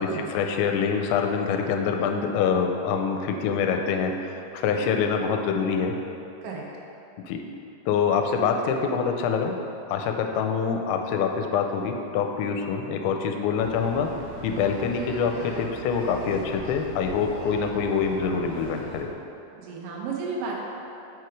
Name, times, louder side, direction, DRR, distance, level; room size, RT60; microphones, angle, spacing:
voice 1, 0.3-5.9 7.3-7.4 7.9-9.6 9.9-14.1 14.4-19.1, left 6 dB, 85° left, 4 dB, 2.9 m, -25 dB
sound 1, 13.6-19.0, equal, 60° right, 1.9 m, -41 dB
voice 2, 19.6-20.5, right 4 dB, 85° right, -3 dB, 3.5 m, -33 dB
7.5 x 4.8 x 4.7 m, 2.8 s
omnidirectional pair, 5.2 m